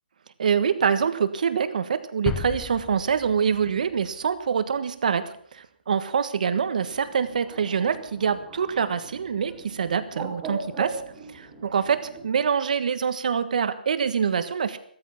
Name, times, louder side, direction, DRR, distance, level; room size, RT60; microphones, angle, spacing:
voice 1, 0.4-11.0 11.3-14.8, right 7 dB, 50° right, 11 dB, 1.4 m, -25 dB
sound 1, 2.3-4.1 4.4-4.5, left 6 dB, 10° left, 0.9 m, -34 dB
Bird, 6.8-12.3, right 4 dB, 10° right, 2.6 m, -39 dB
15.5 x 13.5 x 5.8 m, 0.62 s
hypercardioid pair, 165°, 5 cm